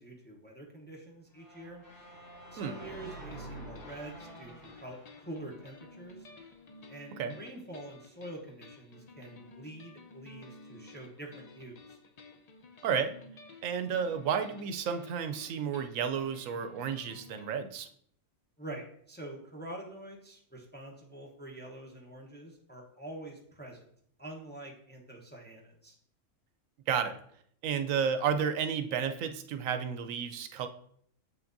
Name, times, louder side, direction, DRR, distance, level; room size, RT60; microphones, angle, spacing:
voice 1, 0.0-1.8 2.5-6.3 6.9-12.0 18.6-23.9 24.2-25.9, right 1 dB, 10° left, -1 dB, 0.7 m, -46 dB
sound 1, 1.3-6.4, equal, 80° left, 3.7 m, -48 dB
sound 2, 3.3-17.6, left 3 dB, 55° left, 0.4 m, -53 dB
voice 2, 13.6-17.9 26.9-27.2 27.6-30.7, right 7 dB, 85° right, 8 dB, 1.0 m, -32 dB
7.7 x 5.8 x 2.6 m, 0.65 s
omnidirectional pair, 1.4 m